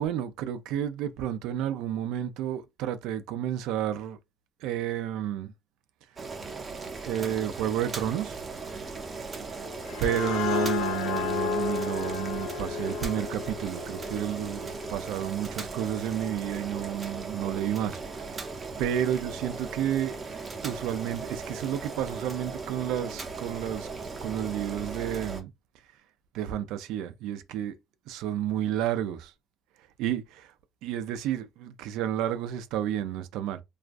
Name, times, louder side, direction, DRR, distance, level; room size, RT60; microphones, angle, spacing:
voice 1, 0.0-4.2 4.6-5.5 7.0-8.4 10.0-18.4 18.8-20.2 20.6-23.9 24.2-25.5 26.3-27.7 28.1-29.3 30.0-30.5 30.8-33.6, right 10 dB, 85° right, 0.3 m, -31 dB
Boiling, 6.2-25.4, right 4 dB, 30° right, 0.6 m, -38 dB
sound 1, 9.6-15.1, left 8 dB, 80° left, 0.4 m, -32 dB
2.3 x 2.3 x 2.4 m
cardioid pair, 110°, 0 cm